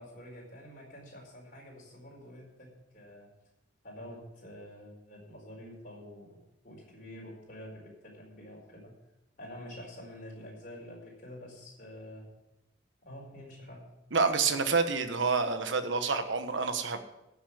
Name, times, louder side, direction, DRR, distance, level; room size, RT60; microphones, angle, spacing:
voice 1, 0.0-2.7 2.9-3.3 3.8-6.4 6.6-8.9 9.4-12.3 13.0-13.9, equal, 45° left, -2 dB, 4.5 m, -47 dB
voice 2, 14.1-17.0, right 4 dB, 70° right, 8 dB, 1.2 m, -28 dB
10.0 x 7.1 x 8.3 m, 0.91 s
head